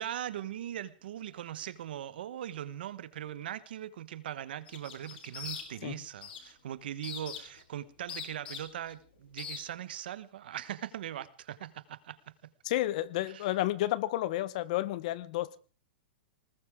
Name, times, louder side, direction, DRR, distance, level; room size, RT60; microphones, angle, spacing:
voice 1, 0.0-12.5 13.3-13.5, right 11 dB, 70° right, 1.2 m, -40 dB
sound 1, 4.7-5.9 6.2-6.5 7.0-7.6 8.1-8.9 9.4-9.6, left 7 dB, 75° left, 4.0 m, -42 dB
voice 2, 12.6-15.6, left 15 dB, 45° left, 0.9 m, -31 dB
20.0 x 20.0 x 3.6 m
supercardioid pair, 165°, 5 cm